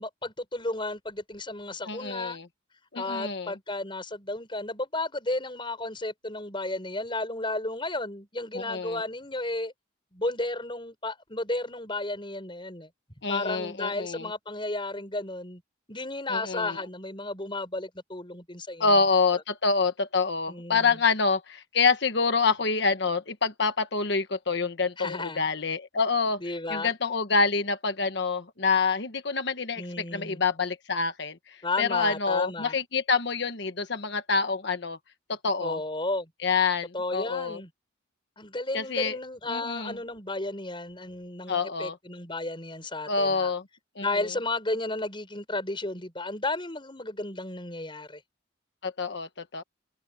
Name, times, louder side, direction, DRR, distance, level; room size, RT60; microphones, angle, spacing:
voice 1, 0.0-2.4 2.9-9.7 10.1-12.9 13.3-15.6 15.9-19.0 20.5-21.0 25.0-25.4 26.4-26.9 29.8-30.4 31.6-32.8 35.6-36.3 36.9-37.7 38.4-43.5 44.0-48.2, left 2 dB, 25° left, 5.8 m, -33 dB
voice 2, 1.9-2.5 2.9-3.5 8.5-9.0 13.2-14.3 16.3-16.8 18.8-26.4 26.7-35.0 35.3-35.8 36.4-37.6 38.7-39.2 39.5-39.9 41.5-42.0 43.1-43.6 44.0-44.1 48.8-49.6, left 4 dB, 60° left, 1.3 m, -27 dB
head